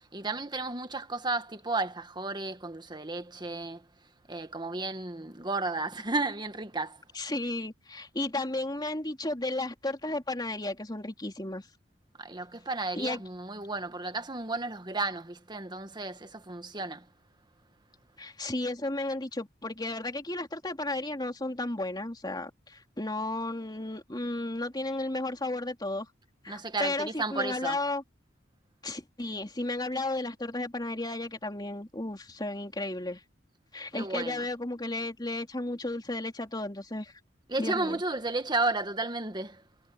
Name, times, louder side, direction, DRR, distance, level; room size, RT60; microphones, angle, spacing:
voice 1, 0.1-3.8 4.3-7.0 12.2-17.0 26.5-27.8 33.9-34.5 37.5-39.6, right 3 dB, 25° right, 1.6 m, -33 dB
voice 2, 7.1-11.7 13.0-13.2 18.2-26.1 26.4-28.0 28.8-33.2 33.7-37.1 37.6-38.0, left 2 dB, 25° left, 3.3 m, -33 dB
head